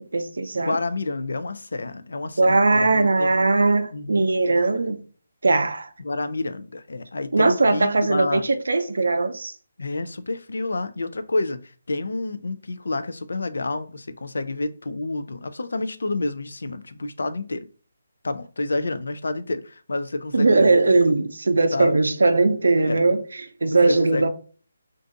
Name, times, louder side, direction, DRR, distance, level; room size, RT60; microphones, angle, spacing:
voice 1, 0.0-0.8 2.4-5.0 5.4-5.9 7.3-9.5 20.3-24.3, right 3 dB, 80° right, 0.5 m, -20 dB
voice 2, 0.5-3.3 3.9-4.3 6.0-8.5 9.8-17.7 18.2-20.9 21.7-22.0 22.8-23.0 23.9-24.3, left 2 dB, 80° left, 0.4 m, -29 dB
2.6 x 2.3 x 3.8 m
hypercardioid pair, 165°, 0 cm